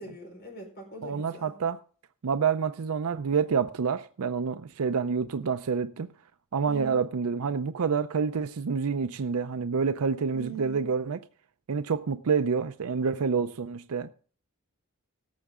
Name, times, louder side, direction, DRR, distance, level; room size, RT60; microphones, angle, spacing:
voice 1, 0.0-1.5 6.7-7.1 10.3-10.9, right 4 dB, 45° left, 4.7 m, -42 dB
voice 2, 1.0-1.8 2.2-6.1 6.5-11.2 11.7-14.1, right 5 dB, 80° right, 0.5 m, -28 dB
18.0 x 7.1 x 3.7 m
head